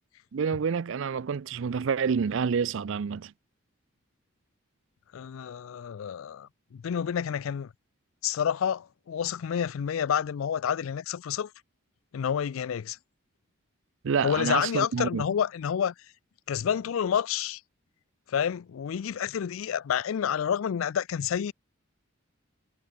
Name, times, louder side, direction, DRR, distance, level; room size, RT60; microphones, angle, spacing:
voice 1, 0.3-3.3 14.0-15.2, right 6 dB, 65° right, 0.4 m, -28 dB
voice 2, 5.1-7.7 8.2-11.5 12.1-13.0 14.2-15.9 16.5-17.6 18.3-21.5, left 8 dB, 75° left, 0.4 m, -29 dB
head